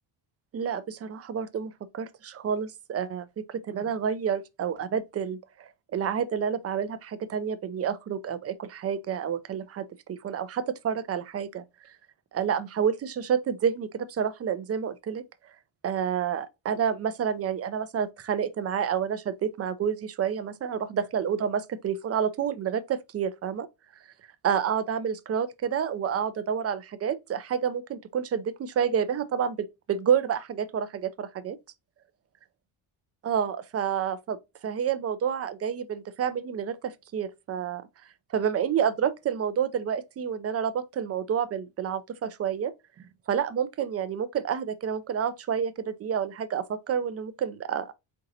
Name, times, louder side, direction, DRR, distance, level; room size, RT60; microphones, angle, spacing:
voice 1, 0.5-11.6 12.3-15.2 15.8-23.7 24.4-31.6 33.2-37.8 38.3-42.7 43.3-47.9, right 8 dB, 35° right, 0.5 m, -29 dB
4.5 x 3.7 x 2.6 m
cardioid pair, 135°, 45 cm